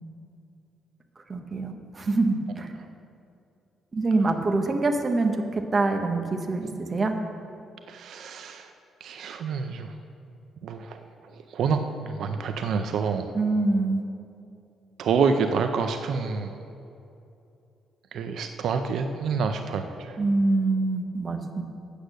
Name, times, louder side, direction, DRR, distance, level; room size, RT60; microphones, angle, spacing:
voice 1, 1.2-2.7 3.9-7.1 13.3-14.1 20.2-21.6, right 3 dB, 25° right, 4 dB, 0.9 m, -25 dB
voice 2, 7.9-8.7 9.0-9.9 10.6-11.0 11.5-13.3 15.0-16.5 18.1-20.2, right 5 dB, 65° right, 7 dB, 0.5 m, -27 dB
8.3 x 8.2 x 6.4 m, 2.7 s
cardioid pair, 135°, 0 cm